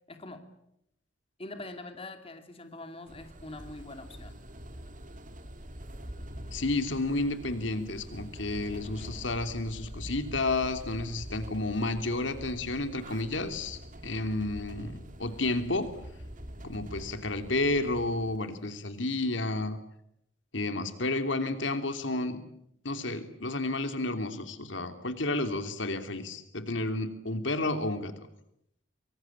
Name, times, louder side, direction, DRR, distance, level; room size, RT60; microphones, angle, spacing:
voice 1, 0.1-0.6 1.4-4.4, left 2 dB, 30° left, 7 dB, 2.6 m, -44 dB
sound 1, 3.1-18.4, equal, 45° right, 2.7 m, -45 dB
voice 2, 6.5-15.9 16.6-19.8 20.5-22.4 22.8-28.3, left 2 dB, 80° left, 8 dB, 3.0 m, -31 dB
25.0 x 24.5 x 8.8 m, 0.77 s
head